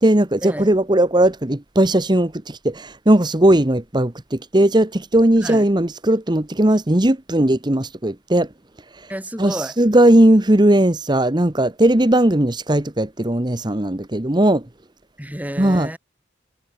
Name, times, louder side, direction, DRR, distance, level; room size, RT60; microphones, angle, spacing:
voice 1, 0.0-8.5 9.4-14.6 15.6-15.9, right 1 dB, 25° right, 1.2 m, -17 dB
voice 2, 9.1-9.8 15.2-16.0, equal, 10° right, 6.5 m, -30 dB
head